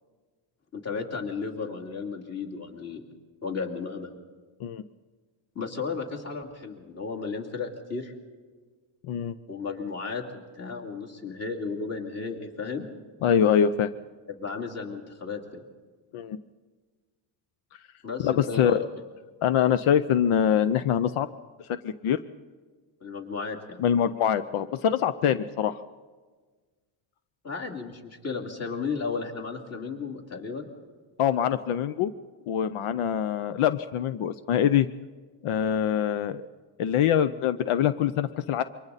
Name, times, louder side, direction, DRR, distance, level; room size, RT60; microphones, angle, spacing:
voice 1, 0.7-3.0 3.4-4.1 5.5-8.1 9.5-10.2 10.6-12.9 14.3-15.6 18.0-18.8 23.0-23.8 27.4-30.7, left 4 dB, 30° left, 0 dB, 2.8 m, -34 dB
voice 2, 9.0-9.3 13.2-13.9 16.1-16.4 18.2-18.8 19.4-21.3 21.7-22.2 23.8-25.8 31.2-32.1 32.5-34.9 35.4-36.4 36.8-38.6, left 9 dB, 85° left, 13 dB, 0.8 m, -24 dB
28.5 x 24.5 x 4.1 m, 1.4 s
cardioid pair, 155°, 49 cm